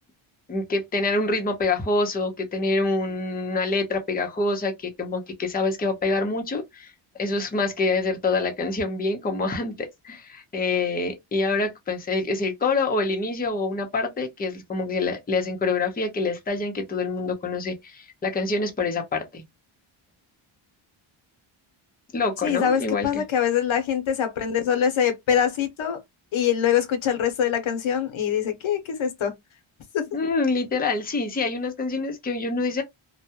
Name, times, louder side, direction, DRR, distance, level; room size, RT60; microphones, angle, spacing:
voice 1, 0.5-19.4 22.1-23.2 30.1-32.8, left 3 dB, 20° left, 0.6 m, -26 dB
voice 2, 22.4-26.0 26.3-29.3 29.9-30.0, left 8 dB, 70° left, 0.8 m, -24 dB
2.2 x 2.0 x 2.7 m
cardioid pair, 110°, 50 cm